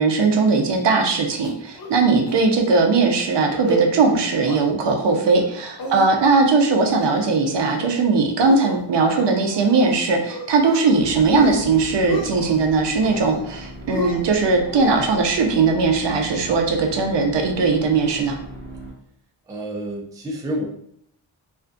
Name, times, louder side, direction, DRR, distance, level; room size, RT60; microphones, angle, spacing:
voice 1, 0.0-18.4, right 4 dB, 65° right, 3 dB, 0.5 m, -19 dB
sound 1, 1.4-2.0 2.3-2.4 2.7-3.0 3.4-3.8 4.2-4.6 5.0-5.5 5.8-6.5 6.8-7.3 7.6-8.0 8.4-10.0 10.3-10.9 11.3-11.7 11.9-12.6 13.0-13.5 13.9-15.2, equal, 50° left, 0.6 m, -32 dB
sound 2, 11.0-18.9, equal, 85° left, 0.9 m, -38 dB
voice 2, 19.5-20.7, equal, 10° right, -2 dB, 0.3 m, -29 dB
2.5 x 2.2 x 2.5 m, 0.69 s
wide cardioid pair, 130°, 46 cm